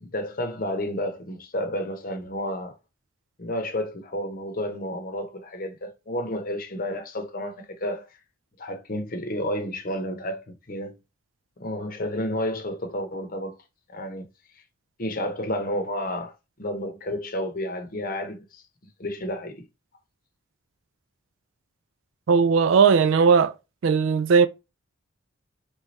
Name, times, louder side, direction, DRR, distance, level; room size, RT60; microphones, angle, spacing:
voice 1, 0.0-2.7 3.4-8.1 8.6-10.9 11.6-13.5 13.9-14.3 15.0-16.3 16.6-18.6 19.0-19.6, left 1 dB, 40° left, 0.8 m, -31 dB
voice 2, 22.3-23.5 23.8-24.5, right 5 dB, 60° right, 0.3 m, -18 dB
3.5 x 3.2 x 4.1 m
head